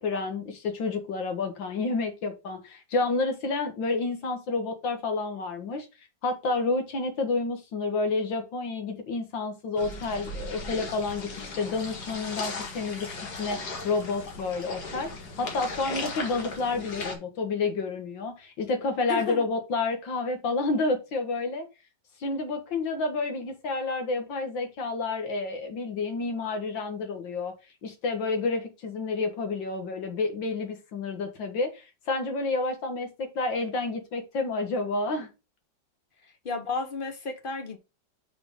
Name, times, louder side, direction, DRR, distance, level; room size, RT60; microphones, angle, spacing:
voice 1, 0.0-5.9 6.2-13.1 13.4-15.1 15.4-21.7 22.2-27.5 27.8-35.3, left 3 dB, 80° left, 2.2 m, -29 dB
sound 1, 9.8-17.2, left 3 dB, 60° left, 2.0 m, -37 dB
voice 2, 19.1-19.5 36.4-37.8, left 4 dB, 35° left, 0.9 m, -32 dB
5.7 x 4.4 x 5.1 m
omnidirectional pair, 2.0 m